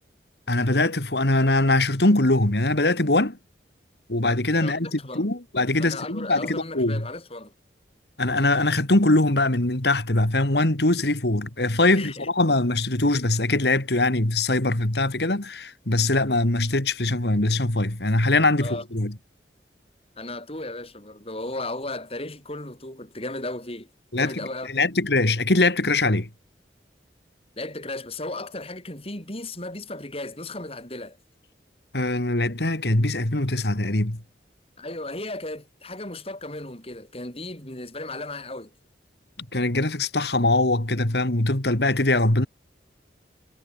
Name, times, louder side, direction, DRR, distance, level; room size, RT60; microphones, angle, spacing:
voice 1, 0.5-3.4 4.1-7.1 8.2-19.1 24.1-24.3 24.7-26.3 31.9-34.2 39.5-42.5, left 2 dB, 70° left, 2.5 m, -22 dB
voice 2, 4.6-5.3 5.8-7.5 11.9-12.3 18.6-18.8 20.2-23.9 24.2-24.7 27.6-31.2 34.8-38.7, left 2 dB, 35° left, 6.5 m, -35 dB
head